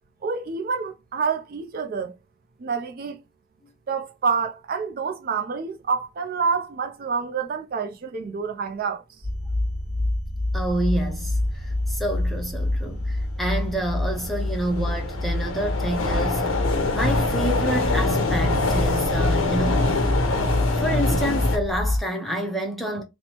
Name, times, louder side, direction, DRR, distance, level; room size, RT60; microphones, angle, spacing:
voice 1, 0.2-2.1 2.6-3.2 3.9-9.0, right 5 dB, 45° right, 0.3 m, -27 dB
sound 1, 9.2-22.0, left 1 dB, 25° right, 1.4 m, -27 dB
voice 2, 10.5-16.6 16.9-19.9 20.7-23.0, right 1 dB, ahead, 0.5 m, -28 dB
sound 2, 12.9-13.0 13.6-21.6, left 2 dB, 90° left, 0.6 m, -25 dB
3.0 x 2.0 x 2.8 m
head